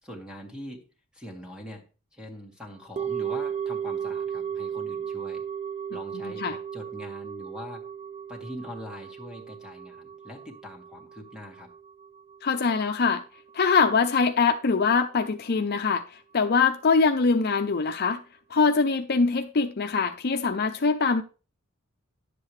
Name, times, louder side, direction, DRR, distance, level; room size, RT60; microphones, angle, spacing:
voice 1, 0.0-0.8 1.1-1.9 2.1-5.4 5.9-7.8 8.3-11.7, left 1 dB, 5° right, 1.8 m, -42 dB
sound 1, 3.0-13.2 13.5-13.6, right 8 dB, 30° right, 0.3 m, -35 dB
voice 2, 6.2-6.6 12.4-13.2 13.5-16.0 16.3-18.2 18.5-21.2, left 4 dB, 45° left, 0.6 m, -23 dB
10.5 x 7.6 x 3.2 m
head